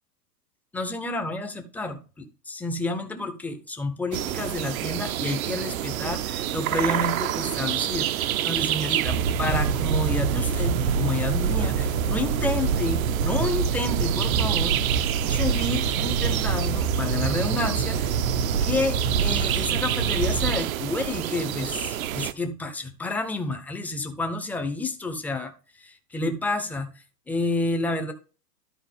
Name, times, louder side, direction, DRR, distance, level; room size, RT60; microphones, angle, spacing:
voice 1, 0.7-14.8 15.3-18.2 18.6-25.5 25.8-26.9 27.3-28.1, left 2 dB, 5° left, 0.7 m, -30 dB
sound 1, 4.1-22.3, right 12 dB, 55° right, 0.8 m, -29 dB
sound 2, 9.0-20.6, right 5 dB, 70° right, 1.6 m, -26 dB
13.0 x 4.4 x 3.5 m
hypercardioid pair, 135°, 50 cm